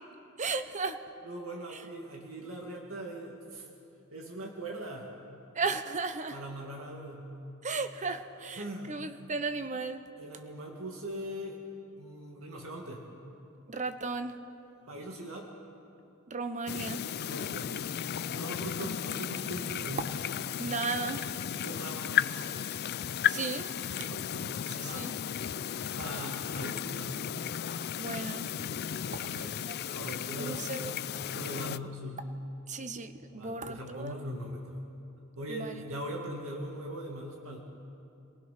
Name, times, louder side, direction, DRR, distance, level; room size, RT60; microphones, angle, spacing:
voice 1, 0.4-1.0 5.5-6.4 7.6-10.0 13.7-14.4 16.3-17.0 20.6-21.3 23.3-23.7 24.8-25.1 28.0-28.5 30.4-30.9 32.7-34.2 35.5-35.7, right 4 dB, 35° right, 9 dB, 1.0 m, -35 dB
voice 2, 1.2-3.7 4.1-5.1 6.3-7.4 8.5-9.0 10.2-11.6 12.0-13.0 14.9-15.5 17.2-17.8 18.3-20.0 21.5-22.4 23.9-25.1 25.8-27.2 29.0-30.7 31.3-32.2 33.4-34.9 35.4-37.6, right 1 dB, 70° right, 0 dB, 2.2 m, -41 dB
sound 1, 16.7-31.8, left 9 dB, 50° left, 0.4 m, -34 dB
28.0 x 19.0 x 5.9 m, 2.8 s
head